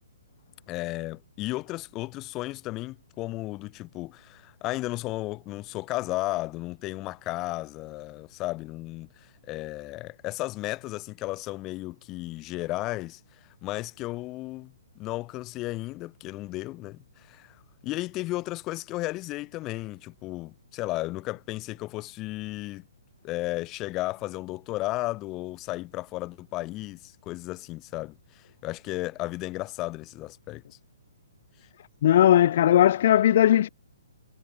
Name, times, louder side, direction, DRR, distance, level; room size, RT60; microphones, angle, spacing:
voice 1, 0.7-13.2 13.6-17.6 17.8-22.8 23.2-30.6, left 19 dB, 15° left, 2.6 m, -34 dB
voice 2, 32.0-33.7, left 11 dB, 35° left, 0.4 m, -18 dB
hypercardioid pair, 175°, 0 cm